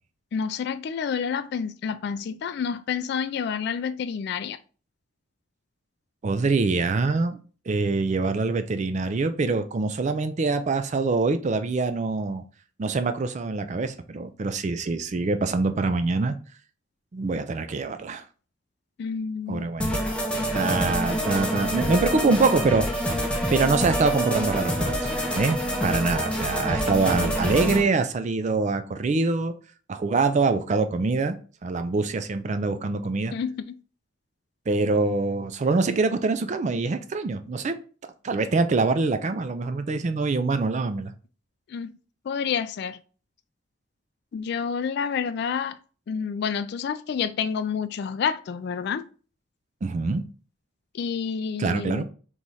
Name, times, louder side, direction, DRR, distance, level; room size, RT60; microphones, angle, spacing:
voice 1, 0.3-4.6 19.0-19.7 33.3-33.6 41.7-41.9 42.2-43.0 44.3-45.8 46.1-49.0 50.9-52.0, left 6 dB, 60° left, 0.3 m, -29 dB
voice 2, 6.2-7.4 7.7-12.4 12.8-16.4 17.1-18.2 19.5-20.0 20.5-23.1 23.5-25.6 25.8-29.5 29.9-31.4 31.6-33.3 34.7-37.8 38.2-41.1 49.8-50.2 51.6-52.0, right 3 dB, 40° right, 0.4 m, -24 dB
sound 1, 19.8-27.8, equal, 5° left, 0.7 m, -26 dB
3.5 x 3.1 x 4.0 m
head